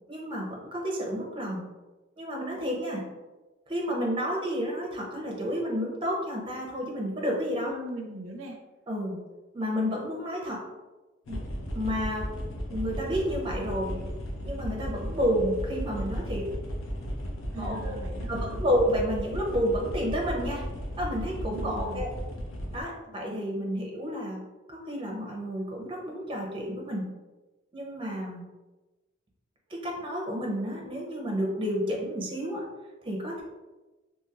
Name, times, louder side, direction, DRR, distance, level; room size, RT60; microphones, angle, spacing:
voice 1, 0.1-1.6 2.2-3.0 3.7-7.7 8.9-9.2 9.5-10.6 11.3-11.4 11.7-12.3 12.7-14.0 14.4-16.5 17.6-18.0 18.3-20.6 21.0-22.1 22.7-24.4 24.7-27.0 27.7-28.4 29.7-32.6 33.0-33.4, equal, 25° right, -2 dB, 0.6 m, -30 dB
voice 2, 7.6-8.6 17.5-18.6 21.5-22.1, right 1 dB, 85° right, 3 dB, 0.4 m, -40 dB
sound 1, 11.3-22.8, equal, 90° left, 0.6 m, -35 dB
2.9 x 2.7 x 2.4 m, 1.1 s
head